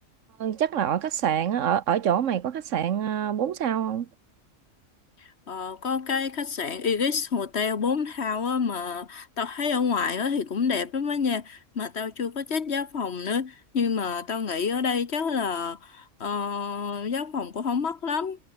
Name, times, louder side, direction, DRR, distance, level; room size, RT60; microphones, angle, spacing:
voice 1, 0.4-4.1, right 9 dB, 80° right, 1.3 m, -26 dB
voice 2, 5.5-18.4, left 5 dB, 60° left, 1.7 m, -28 dB
omnidirectional pair, 1.3 m